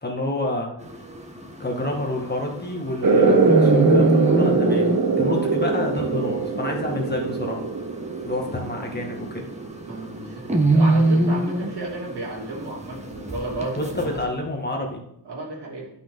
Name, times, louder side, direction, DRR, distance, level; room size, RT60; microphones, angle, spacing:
voice 1, 0.0-0.7 1.6-4.9 5.2-7.6 8.2-9.4 13.8-15.0, left 1 dB, 25° left, 0 dB, 2.0 m, -28 dB
sound 1, 0.8-14.2, right 2 dB, 15° right, 1.4 m, -26 dB
sound 2, 3.0-10.2, right 4 dB, 50° right, 1.2 m, -22 dB
voice 2, 9.8-14.4 15.2-15.9, right 2 dB, 70° right, -2 dB, 2.9 m, -33 dB
11.5 x 5.9 x 4.0 m, 0.75 s
wide cardioid pair, 90°, 42 cm